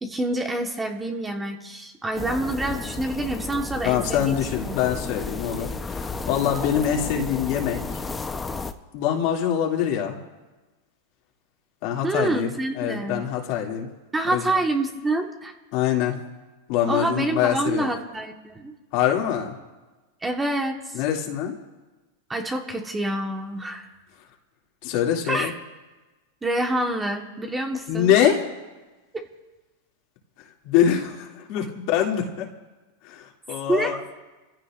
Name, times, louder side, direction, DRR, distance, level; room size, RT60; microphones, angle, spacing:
voice 1, 0.0-4.4 4.7-4.8 12.0-13.2 14.1-15.5 16.9-18.7 20.2-21.0 22.3-23.9 25.3-25.5 26.4-28.1 29.1-29.2 33.7-34.0, right 1 dB, 10° right, 3 dB, 1.3 m, -27 dB
sound 1, 2.1-8.7, left 4 dB, 15° left, 0.8 m, -33 dB
voice 2, 3.8-8.0 8.9-10.2 11.8-13.9 14.3-14.4 15.7-16.2 16.7-17.9 18.9-19.6 20.9-21.6 24.8-25.5 27.9-28.4 30.6-32.5 33.0-34.0, left 9 dB, 55° left, 0 dB, 2.5 m, -24 dB
28.0 x 15.5 x 2.5 m, 1.2 s
supercardioid pair, 135°, 0 cm